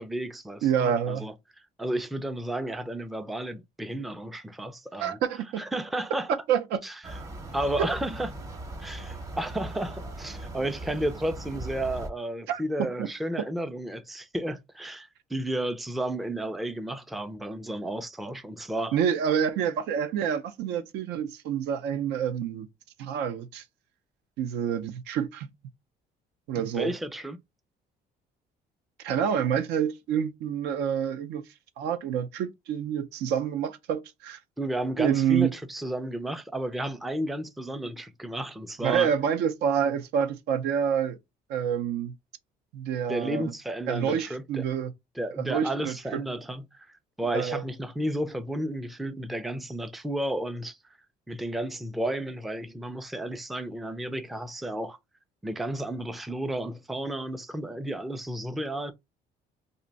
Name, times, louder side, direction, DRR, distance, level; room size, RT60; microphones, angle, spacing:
voice 1, 0.0-1.3 1.8-5.2 5.6-6.3 6.8-7.2 7.5-8.3 8.8-19.0 26.7-27.4 34.6-39.1 43.1-44.6 45.2-50.8 51.3-55.0 55.4-58.9, right 1 dB, ahead, 0.3 m, -32 dB
voice 2, 0.6-1.3 5.0-5.6 6.5-6.8 7.8-7.9 12.5-13.1 18.9-22.7 23.0-23.6 24.4-25.5 26.5-26.9 29.0-31.4 31.8-34.4 35.0-35.5 38.8-41.2 41.5-42.1 42.7-43.5 43.9-44.9 45.4-46.2 47.3-47.6, right 8 dB, 85° right, 0.5 m, -27 dB
sound 1, 7.0-12.1, right 1 dB, 20° right, 0.8 m, -39 dB
2.6 x 2.1 x 3.8 m
cardioid pair, 110°, 17 cm